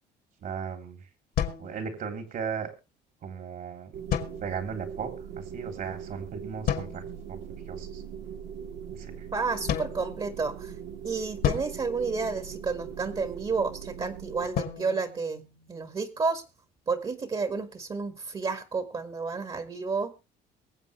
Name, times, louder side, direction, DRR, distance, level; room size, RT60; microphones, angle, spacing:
voice 1, 0.4-1.0 1.6-2.7 3.2-3.9 4.4-5.1 5.5-7.0 7.3-7.4 7.7-8.0 9.0-9.2, right 6 dB, 55° right, 6 dB, 3.5 m, -36 dB
sound 1, 1.4-2.4 4.1-4.9 6.7-7.3 9.7-10.7 11.4-12.9 14.5-16.1, left 9 dB, 65° left, 2.1 m, -33 dB
sound 2, 3.9-14.5, right 8 dB, 80° right, 2.3 m, -41 dB
voice 2, 9.3-10.7 11.0-15.4 15.7-16.4 16.9-20.1, right 4 dB, 30° right, 8 dB, 1.8 m, -31 dB
23.5 x 7.8 x 3.3 m, 0.29 s
cardioid pair, 110°, 17 cm